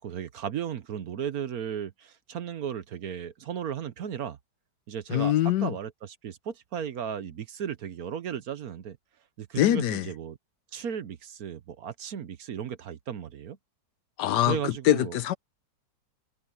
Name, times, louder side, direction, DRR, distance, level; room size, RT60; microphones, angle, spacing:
voice 1, 0.0-4.4 4.9-9.0 9.4-10.4 10.7-13.6 14.5-15.2, right 8 dB, 60° right, 1.2 m, -35 dB
voice 2, 5.1-5.7 9.6-10.1 14.2-15.3, left 13 dB, 75° left, 1.2 m, -24 dB
omnidirectional pair, 1.9 m